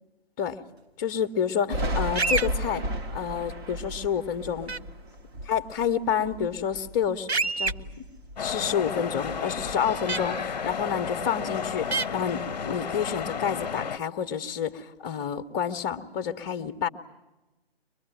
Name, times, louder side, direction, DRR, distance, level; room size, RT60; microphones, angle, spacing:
voice 1, 1.0-2.8 3.1-4.7 5.5-7.9 8.4-16.9, left 8 dB, 20° left, 10 dB, 1.0 m, -29 dB
Thunder, 1.7-7.1 7.5-9.0 9.2-10.9, right 1 dB, 25° right, 1.2 m, -35 dB
sound 1, 2.1-2.5 4.7-4.8 7.3-7.7 10.1-10.2 11.9-12.1, right 3 dB, 90° right, 0.9 m, -25 dB
sound 2, 8.4-14.0, left 6 dB, 40° left, 0.9 m, -32 dB
24.0 x 21.5 x 9.0 m, 1.1 s
figure-of-eight pair, 135°, 31 cm